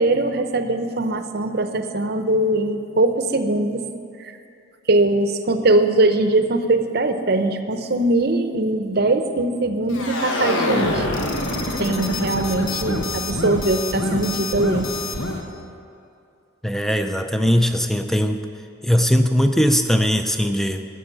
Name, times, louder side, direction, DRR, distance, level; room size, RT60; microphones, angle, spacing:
voice 1, 0.0-3.8 4.2-4.3 4.9-11.1 11.8-14.9, right 2 dB, 50° right, 8 dB, 0.7 m, -21 dB
sound 1, 9.9-15.4, left 2 dB, 80° left, 1.2 m, -25 dB
voice 2, 16.6-18.4 18.8-20.8, equal, ahead, 7 dB, 0.5 m, -19 dB
13.0 x 6.3 x 7.9 m, 2.5 s
head